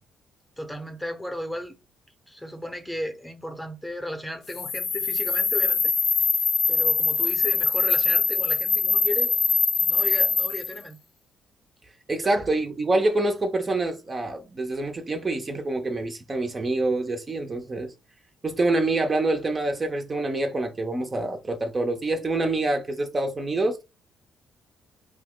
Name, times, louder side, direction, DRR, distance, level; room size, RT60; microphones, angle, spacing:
voice 1, 0.6-1.8 2.3-5.9 6.7-9.3 9.8-11.0 12.2-12.5, left 1 dB, 5° left, 0.7 m, -35 dB
sound 1, 4.5-10.8, left 5 dB, 75° left, 0.6 m, -23 dB
voice 2, 12.1-17.9 18.4-23.8, right 2 dB, 30° right, 0.5 m, -26 dB
2.7 x 2.1 x 3.7 m
cardioid pair, 90°, 0 cm